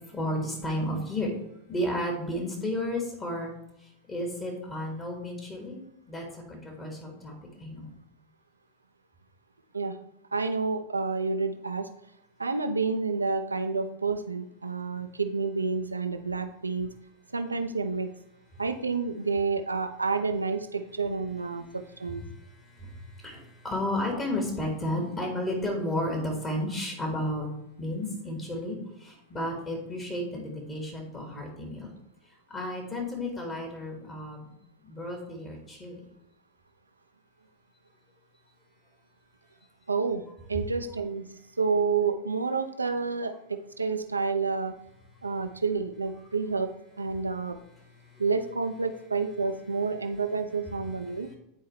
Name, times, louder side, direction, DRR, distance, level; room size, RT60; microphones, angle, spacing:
voice 1, 0.1-1.3 1.7-3.5 4.1-5.8 6.1-7.3 7.6-7.9 22.6-27.5 27.8-31.9 32.5-34.5 34.8-36.0, left 1 dB, 20° left, 1 dB, 1.7 m, -32 dB
voice 2, 10.3-11.9 12.4-16.9 17.3-18.1 18.6-22.2 39.9-40.2 40.5-41.2 41.6-44.7 45.2-46.7 47.0-47.6 48.2-51.3, right 4 dB, 80° right, 8 dB, 0.6 m, -29 dB
9.8 x 4.6 x 3.2 m, 0.80 s
figure-of-eight pair, 90°, 0 cm